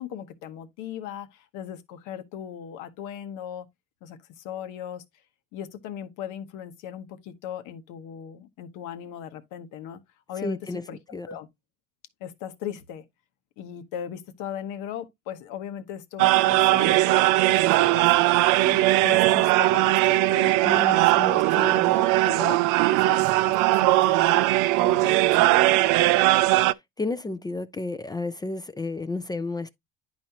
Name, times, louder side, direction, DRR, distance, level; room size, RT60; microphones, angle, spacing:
voice 1, 0.0-3.7 4.0-5.0 5.5-10.0 10.3-10.6 10.9-11.5 12.2-13.0 13.6-18.2 18.6-20.5 20.8-21.6 22.0-22.6 22.9-23.2 23.8-24.4 24.8-25.8, left 9 dB, 85° left, 1.1 m, -38 dB
voice 2, 10.4-10.8 11.1-11.3 20.6-21.9 27.0-29.7, left 2 dB, 15° left, 0.4 m, -32 dB
sound 1, 16.2-26.7, right 18 dB, 80° right, 0.5 m, -20 dB
10.5 x 4.2 x 2.8 m
cardioid pair, 125°, 30 cm